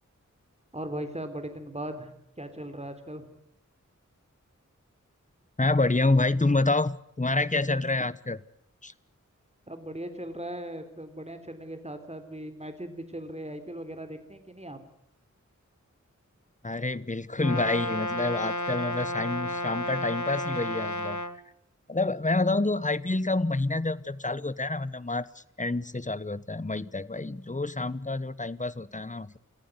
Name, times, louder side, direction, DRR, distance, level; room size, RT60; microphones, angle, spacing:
voice 1, 0.7-2.1 2.4-3.3 9.7-14.8, right 1 dB, 20° right, 8 dB, 3.6 m, -38 dB
voice 2, 5.6-8.4 8.8-8.9 16.6-21.2 21.9-29.4, left 2 dB, 25° left, 17 dB, 1.0 m, -28 dB
Brass instrument, 17.4-21.4, left 1 dB, 70° left, 1.3 m, -32 dB
28.0 x 14.5 x 9.6 m, 0.76 s
wide cardioid pair, 55°, 31 cm